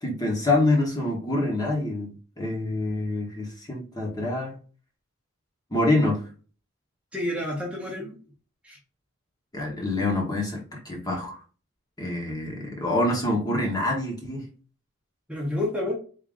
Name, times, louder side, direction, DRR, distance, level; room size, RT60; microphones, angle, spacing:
voice 1, 0.0-2.1 2.4-4.5 5.7-6.2 9.5-11.4 12.0-14.5, left 2 dB, 20° left, 1.0 m, -26 dB
voice 2, 7.1-8.1 8.6-8.8 15.3-16.0, left 1 dB, 5° right, 0.8 m, -29 dB
3.7 x 2.7 x 3.5 m
head